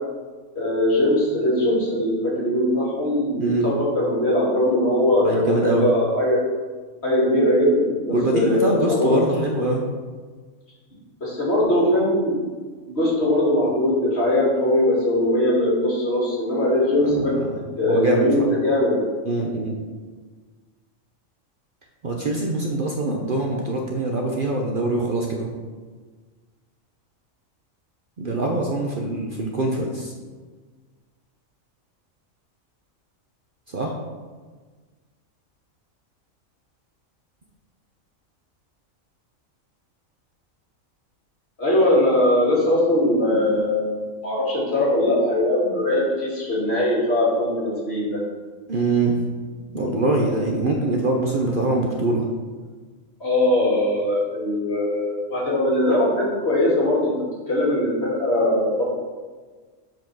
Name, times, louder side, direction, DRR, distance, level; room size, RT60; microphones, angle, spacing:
voice 1, 0.5-6.4 7.0-9.1 11.2-12.5 12.9-17.3 17.8-19.0 41.6-48.2 53.2-57.1 57.5-58.8, left 1 dB, 50° left, -6 dB, 2.8 m, -21 dB
voice 2, 3.3-3.7 5.1-5.9 8.1-9.9 17.0-17.6 17.9-18.5 19.2-19.7 22.0-25.5 28.2-30.1 33.7-33.9 48.7-49.2 49.7-52.2, right 2 dB, 45° right, 0 dB, 0.9 m, -23 dB
7.5 x 4.6 x 6.0 m, 1.4 s
omnidirectional pair, 1.4 m